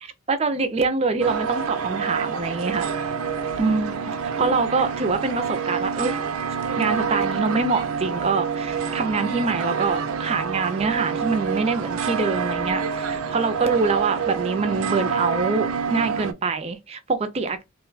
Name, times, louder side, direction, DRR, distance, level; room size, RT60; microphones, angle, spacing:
voice 1, 0.0-2.9 3.6-6.2 6.8-17.6, right 4 dB, 30° right, 0.4 m, -25 dB
sound 1, 1.2-16.3, right 6 dB, 90° right, 0.5 m, -27 dB
3.0 x 2.2 x 3.8 m
head